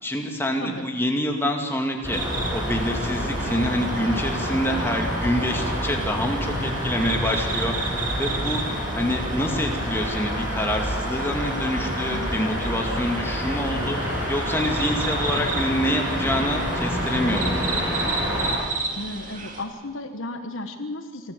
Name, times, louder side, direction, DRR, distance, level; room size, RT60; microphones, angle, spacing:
voice 1, 0.0-2.2 2.5-8.6 8.9-17.7, left 1 dB, 10° left, 2 dB, 2.2 m, -26 dB
sound 1, 2.0-18.6, equal, 10° right, 7.5 m, -28 dB
sound 2, 2.1-19.6, right 4 dB, 40° right, 2.3 m, -35 dB
voice 2, 19.0-21.3, left 2 dB, 70° left, 7 dB, 1.4 m, -34 dB
25.5 x 13.5 x 8.3 m, 1.4 s
head